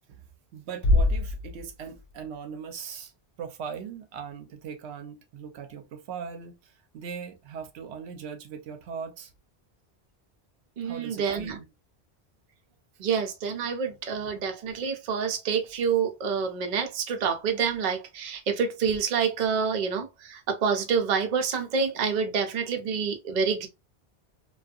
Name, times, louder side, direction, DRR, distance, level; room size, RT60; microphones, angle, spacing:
voice 1, 0.5-3.1 3.4-9.3 10.8-11.6, right 7 dB, 85° right, 0.8 m, -39 dB
Bass drum, 0.8-2.5, left 1 dB, 70° left, 0.8 m, -25 dB
voice 2, 10.8-11.6 13.0-23.7, right 6 dB, 50° right, 0.6 m, -27 dB
2.6 x 2.3 x 2.3 m
omnidirectional pair, 1.1 m